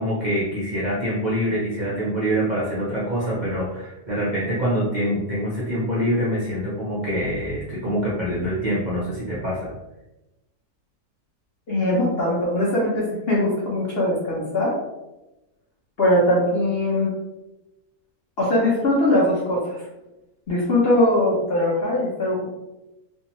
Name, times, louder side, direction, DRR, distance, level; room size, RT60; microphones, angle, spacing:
voice 1, 0.0-9.7, equal, 55° right, -7 dB, 0.5 m, -25 dB
voice 2, 11.7-14.7 16.0-17.1 18.4-19.7 20.5-22.4, left 1 dB, 55° left, -6 dB, 0.7 m, -21 dB
2.6 x 2.3 x 2.9 m, 0.99 s
omnidirectional pair, 1.6 m